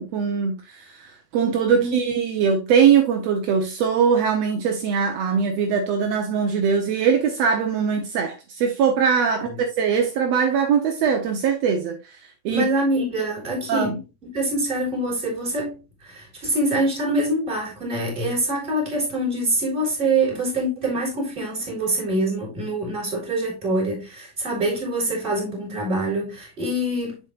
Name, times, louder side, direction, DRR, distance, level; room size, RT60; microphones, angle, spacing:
voice 1, 0.0-9.5 9.8-12.0 12.4-12.7 13.7-14.0, right 6 dB, 80° right, 1.5 m, -21 dB
voice 2, 9.3-9.6 12.5-27.2, right 1 dB, 15° right, 3.3 m, -25 dB
7.4 x 7.0 x 2.4 m
omnidirectional pair, 4.3 m